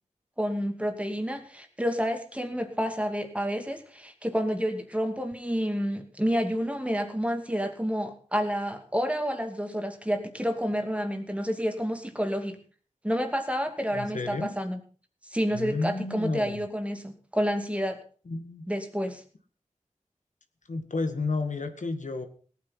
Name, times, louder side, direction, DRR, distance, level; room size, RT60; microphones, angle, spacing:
voice 1, 0.4-12.6 13.0-14.8 15.3-18.0 18.7-19.2, equal, 10° right, 5 dB, 2.5 m, -29 dB
voice 2, 13.9-14.5 15.5-16.6 18.3-18.6 20.7-22.3, left 3 dB, 75° left, 7 dB, 1.9 m, -31 dB
18.5 x 9.3 x 5.7 m, 0.41 s
wide cardioid pair, 75°, 13 cm